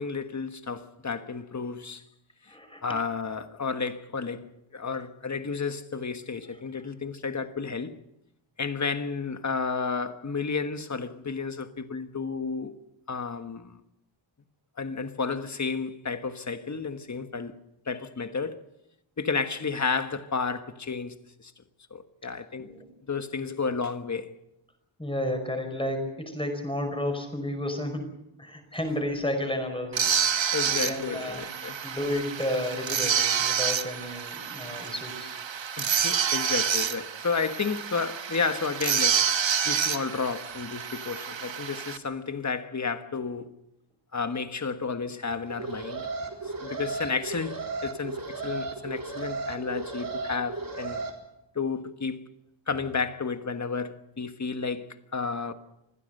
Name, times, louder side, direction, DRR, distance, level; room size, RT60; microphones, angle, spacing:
voice 1, 0.0-2.0 2.8-8.0 8.6-12.8 13.1-13.8 14.8-17.6 17.9-18.6 19.2-21.5 21.9-22.8 23.1-24.3 30.5-31.8 35.8-39.3 39.6-43.5 44.1-46.1 46.4-51.0 51.5-52.3 52.7-55.5, left 5 dB, 35° left, 1.4 m, -32 dB
voice 2, 2.5-2.8 6.3-6.9 22.6-22.9 25.0-28.1 28.4-31.5 31.8-35.3, left 1 dB, 10° left, 5.3 m, -32 dB
sound 1, 29.9-42.0, right 7 dB, 70° right, 1.3 m, -28 dB
Alarm, 45.5-51.1, right 3 dB, 45° right, 4.0 m, -35 dB
25.5 x 16.0 x 7.8 m
wide cardioid pair, 130°, 47 cm